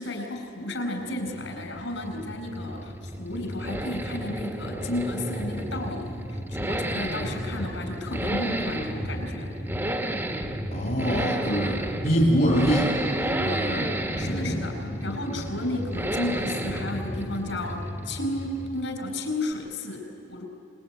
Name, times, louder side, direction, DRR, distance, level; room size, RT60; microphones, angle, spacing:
voice 1, 0.0-9.5 14.2-20.4, left 1 dB, 65° left, 5 dB, 5.7 m, -33 dB
sound 1, 1.0-19.0, right 1 dB, 10° right, 1.7 m, -32 dB
voice 2, 10.7-13.9 14.2-15.4, equal, 50° left, -2 dB, 3.1 m, -26 dB
27.0 x 22.0 x 9.1 m, 2.7 s
head